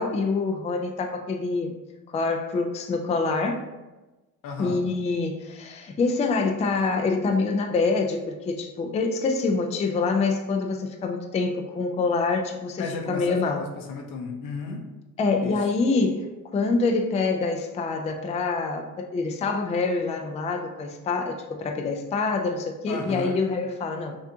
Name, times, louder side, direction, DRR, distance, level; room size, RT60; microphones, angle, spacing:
voice 1, 0.0-1.7 2.1-3.6 4.6-13.6 15.2-16.3 16.5-24.2, left 3 dB, 20° left, 3 dB, 0.3 m, -26 dB
voice 2, 4.4-4.8 12.8-14.8 15.4-15.6 22.9-23.4, left 4 dB, 75° left, 2 dB, 0.8 m, -34 dB
5.8 x 2.4 x 2.7 m, 1.1 s
cardioid pair, 115°, 34 cm